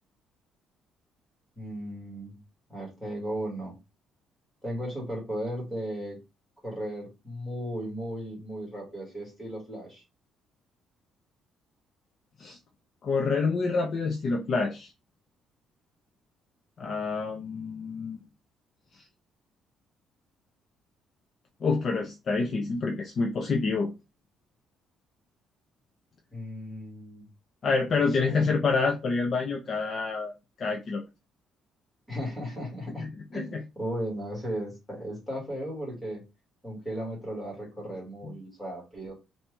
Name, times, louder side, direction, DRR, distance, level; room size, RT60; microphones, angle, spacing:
voice 1, 1.6-2.4 2.7-3.8 4.6-6.2 6.6-10.0 26.3-27.3 27.9-28.5 32.1-33.1 33.3-36.2 36.6-39.1, equal, 5° left, 1.9 m, -36 dB
voice 2, 13.0-14.9 16.8-18.2 21.6-23.9 27.6-30.3 30.6-31.0 33.0-33.1 33.3-33.6 38.2-38.3, left 4 dB, 35° left, 0.5 m, -27 dB
4.3 x 2.8 x 3.3 m
cardioid pair, 180°, 0 cm